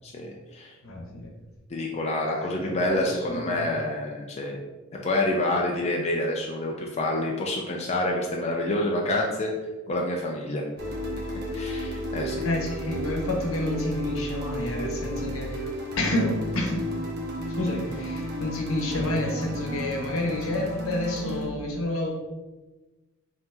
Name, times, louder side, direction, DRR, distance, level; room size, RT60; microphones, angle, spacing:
voice 1, 0.0-0.7 1.7-4.6 4.9-9.5 9.9-10.6 11.5-12.5, left 1 dB, 30° left, -1 dB, 0.4 m, -27 dB
voice 2, 0.8-1.3 2.3-3.7 12.4-16.8 17.5-22.1, left 1 dB, 75° left, 1 dB, 1.0 m, -29 dB
sound 1, 10.8-21.4, equal, 50° right, 1.1 m, -32 dB
5.5 x 2.8 x 2.8 m, 1.2 s
head